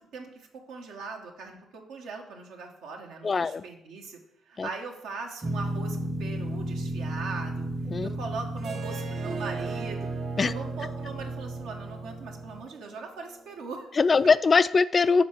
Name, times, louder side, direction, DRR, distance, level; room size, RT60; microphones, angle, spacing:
voice 1, 0.1-4.2 4.5-7.7 8.0-10.1 10.4-13.9, right 4 dB, 75° right, 2 dB, 1.2 m, -40 dB
voice 2, 3.2-3.6 4.6-4.7 7.9-8.1 10.4-10.5 13.9-15.2, left 4 dB, 40° left, 16 dB, 0.3 m, -22 dB
sound 1, 5.4-12.6, right 1 dB, 35° right, 1.2 m, -34 dB
Harp, 8.6-13.7, right 5 dB, 55° right, 0.7 m, -41 dB
5.8 x 4.5 x 5.8 m, 0.80 s
hypercardioid pair, 50°, 0 cm